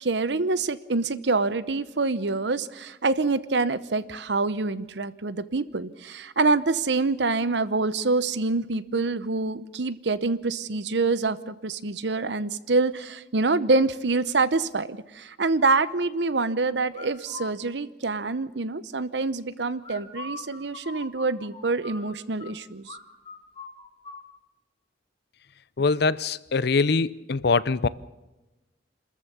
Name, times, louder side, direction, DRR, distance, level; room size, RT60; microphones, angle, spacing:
voice 1, 0.0-23.0, right 3 dB, 65° right, 0.9 m, -26 dB
sound 1, 16.9-17.5 19.8-22.5 22.9-23.0 23.3-24.2, left 3 dB, 30° left, 2.5 m, -41 dB
voice 2, 25.8-27.9, left 4 dB, 60° left, 0.6 m, -23 dB
27.0 x 14.0 x 7.0 m
head